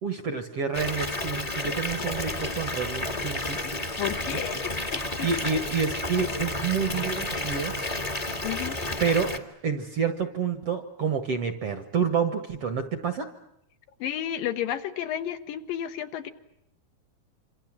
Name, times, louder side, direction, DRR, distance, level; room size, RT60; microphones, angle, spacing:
voice 1, 0.0-3.6 4.3-4.4 5.2-7.7 9.0-9.3 9.6-13.3, right 6 dB, 55° right, 9 dB, 1.8 m, -28 dB
Water tap faucet / Bathtub (filling or washing) / Fill (with liquid), 0.7-9.4, left 2 dB, 20° left, 1.1 m, -31 dB
voice 2, 3.6-5.3 8.4-8.8 14.0-16.3, left 11 dB, 70° left, 8 dB, 2.8 m, -32 dB
27.5 x 26.0 x 7.5 m, 0.80 s
omnidirectional pair, 4.4 m